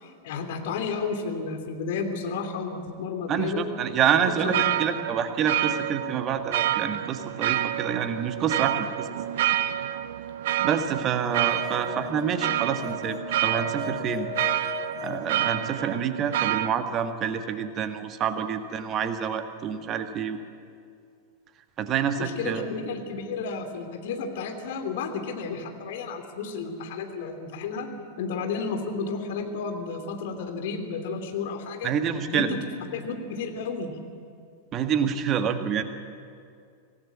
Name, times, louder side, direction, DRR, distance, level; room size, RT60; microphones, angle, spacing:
voice 1, 0.0-3.7 4.3-4.9 22.2-27.9 28.2-31.9 32.3-32.5 32.9-34.0, left 5 dB, 55° left, 5 dB, 3.0 m, -32 dB
voice 2, 3.3-9.1 10.6-14.3 15.0-20.4 21.8-22.7 31.8-32.5 34.7-35.8, right 8 dB, 30° right, 8 dB, 1.7 m, -27 dB
sound 1, 4.0-16.7, right 12 dB, 55° right, 0.7 m, -28 dB
sound 2, 11.3-16.1, left 12 dB, 30° left, 0.8 m, -39 dB
25.0 x 17.5 x 8.6 m, 2.3 s
figure-of-eight pair, 90°, 0 cm